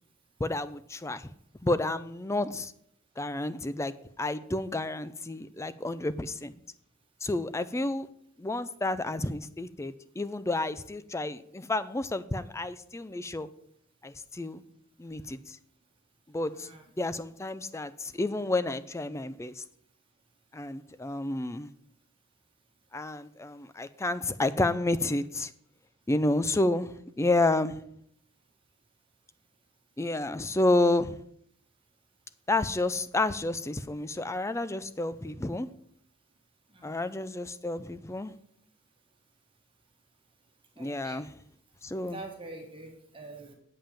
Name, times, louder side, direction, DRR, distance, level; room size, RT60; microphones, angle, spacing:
voice 1, 0.4-1.3 1.6-2.7 3.2-6.5 7.2-8.1 8.4-13.5 14.0-14.6 15.0-15.6 16.3-16.7 17.0-19.6 20.5-21.7 22.9-25.5 26.1-27.8 30.0-31.2 32.5-35.7 36.8-38.3 40.8-41.3 41.8-42.2, left 2 dB, 15° left, 14 dB, 0.4 m, -30 dB
voice 2, 16.5-16.8 36.7-37.2 40.8-41.2 42.1-43.5, right 2 dB, 25° right, 1 dB, 1.5 m, -45 dB
8.7 x 5.4 x 7.4 m, 0.69 s
head